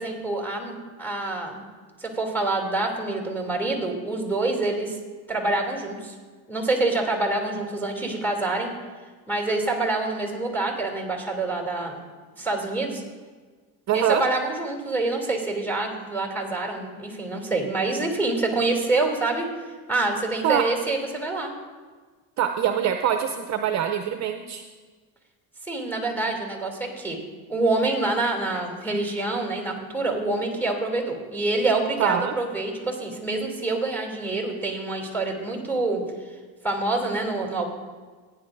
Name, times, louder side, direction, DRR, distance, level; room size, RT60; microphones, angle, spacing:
voice 1, 0.0-1.6 2.0-5.0 5.3-6.1 6.5-8.7 9.3-12.0 12.4-13.0 13.9-19.5 19.9-21.5 25.7-27.2 27.5-36.0 36.6-37.7, right 2 dB, 5° left, 1 dB, 2.8 m, -26 dB
voice 2, 13.9-14.2 20.4-20.6 22.4-24.6 32.0-32.3, right 9 dB, 40° right, 7 dB, 0.6 m, -24 dB
17.0 x 9.8 x 2.6 m, 1.4 s
cardioid pair, 115°, 41 cm